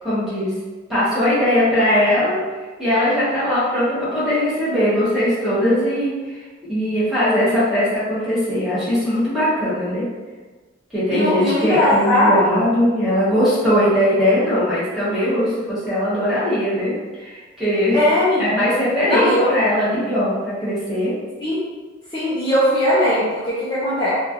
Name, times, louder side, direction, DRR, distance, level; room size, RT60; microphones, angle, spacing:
voice 1, 0.0-0.5 0.9-2.4 2.8-6.4 6.7-10.0 10.9-18.0 18.4-21.1, equal, ahead, -12 dB, 1.0 m, -20 dB
voice 2, 11.1-12.6 17.9-18.5 19.0-19.5 21.4-21.6 22.1-24.1, left 1 dB, 25° left, -10 dB, 0.5 m, -19 dB
3.1 x 2.4 x 2.4 m, 1.3 s
head